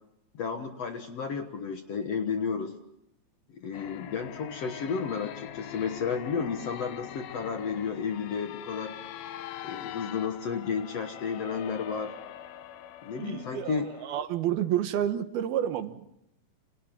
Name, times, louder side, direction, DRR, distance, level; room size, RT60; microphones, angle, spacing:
voice 1, 0.3-2.8 3.5-8.9 9.6-12.1 13.0-13.9, left 6 dB, 60° left, 6 dB, 1.9 m, -32 dB
sound 1, 3.7-14.2, left 12 dB, 75° left, 2.7 m, -43 dB
voice 2, 13.2-16.1, right 10 dB, 80° right, 9 dB, 3.1 m, -30 dB
29.0 x 26.5 x 3.7 m, 0.81 s
omnidirectional pair, 4.4 m